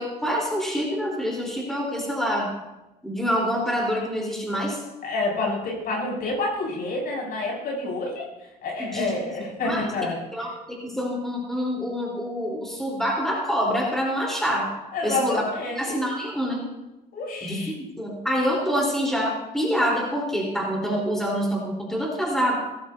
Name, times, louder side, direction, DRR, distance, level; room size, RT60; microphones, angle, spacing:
voice 1, 0.0-2.5 3.0-4.8 8.8-9.1 9.6-9.9 10.3-14.7 15.0-15.4 15.8-16.6 17.4-22.5, equal, ahead, -2 dB, 4.2 m, -26 dB
voice 2, 5.0-8.3 8.6-10.2 14.9-16.0 17.1-17.7, left 2 dB, 60° left, -2 dB, 6.2 m, -28 dB
19.0 x 14.5 x 2.9 m, 0.97 s
cardioid pair, 110°, 17 cm